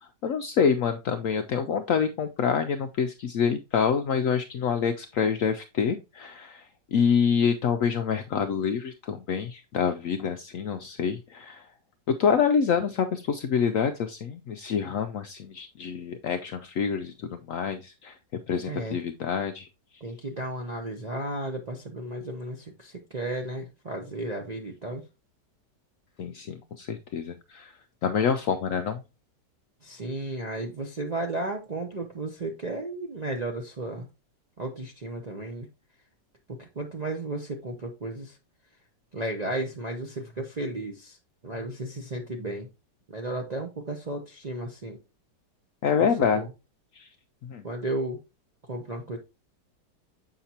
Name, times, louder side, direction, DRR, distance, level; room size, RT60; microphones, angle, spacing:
voice 1, 0.0-11.7 12.2-18.2 18.5-19.7 26.2-29.0 45.8-46.5 46.9-47.1 47.4-47.6, left 6 dB, 75° left, 7 dB, 0.8 m, -27 dB
voice 2, 18.7-19.0 20.0-25.0 29.8-34.1 34.6-35.7 36.5-38.4 39.1-41.2 41.4-42.7 43.1-45.0 46.0-46.5 47.6-48.2 48.7-49.2, right 2 dB, 45° right, 1 dB, 0.5 m, -34 dB
7.2 x 5.8 x 2.8 m, 0.26 s
omnidirectional pair, 1.9 m